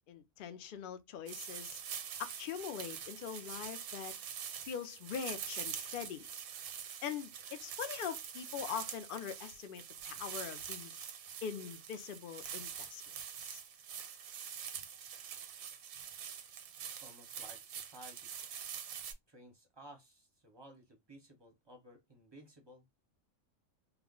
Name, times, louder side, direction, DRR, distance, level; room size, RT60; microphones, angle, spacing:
voice 1, 0.1-1.8 2.2-4.1 4.6-6.3 7.0-11.0 11.4-13.0 13.4-13.6, left 8 dB, 70° left, 0.5 m, -42 dB
sound 1, 1.3-19.1, right 8 dB, 85° right, 1.0 m, -45 dB
voice 2, 16.8-18.3 19.3-22.8, equal, 25° right, 0.5 m, -56 dB
2.4 x 2.0 x 3.6 m
omnidirectional pair, 1.4 m